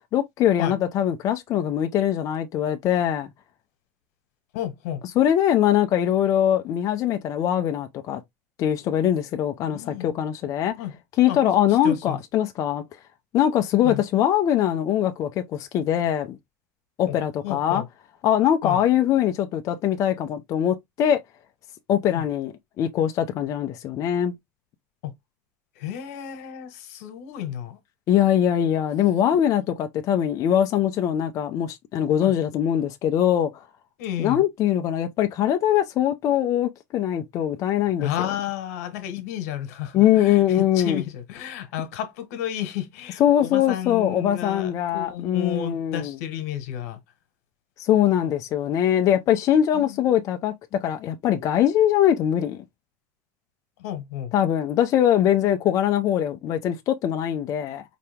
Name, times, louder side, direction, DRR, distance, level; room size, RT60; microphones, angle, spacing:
voice 1, 0.1-3.3 5.2-8.2 8.6-10.7 11.2-12.8 13.3-16.4 17.0-17.8 18.2-21.2 21.9-24.3 28.1-33.6 34.2-38.1 39.9-41.0 43.2-46.1 47.8-50.5 50.8-52.6 54.3-57.8, left 10 dB, 40° left, 0.7 m, -22 dB
voice 2, 4.5-5.0 9.7-10.2 10.8-10.9 11.3-11.4 11.8-12.2 13.8-14.0 17.1-17.2 17.4-17.8 18.6-18.8 22.1-22.2 25.0-25.1 25.8-27.8 29.2-29.4 32.2-32.3 34.0-34.4 38.0-47.0 49.7-50.0 53.8-54.3, left 10 dB, 80° left, 1.3 m, -32 dB
5.0 x 2.9 x 3.4 m
cardioid pair, 145°, 8 cm